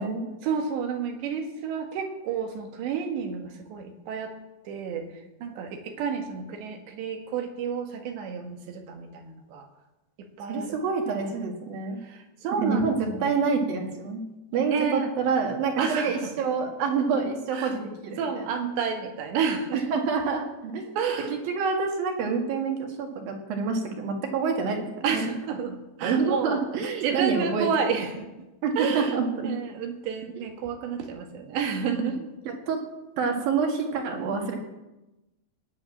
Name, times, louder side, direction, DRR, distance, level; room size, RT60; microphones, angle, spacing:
voice 1, 0.4-4.4 4.7-9.7 10.2-10.8 12.0-13.3 14.7-15.1 15.8-16.3 17.5-17.8 18.2-19.8 21.0-21.4 25.0-28.3 28.8-29.2 29.4-32.2, right 6 dB, 85° right, 4 dB, 3.9 m, -30 dB
voice 2, 10.5-12.0 12.6-14.2 14.5-18.5 19.7-20.9 21.3-25.4 26.0-27.7 28.6-29.5 30.4-30.5 31.9-32.1 32.7-32.8 33.2-34.6, right 5 dB, 60° right, 3 dB, 3.5 m, -27 dB
17.5 x 9.6 x 7.4 m, 1.0 s
omnidirectional pair, 4.9 m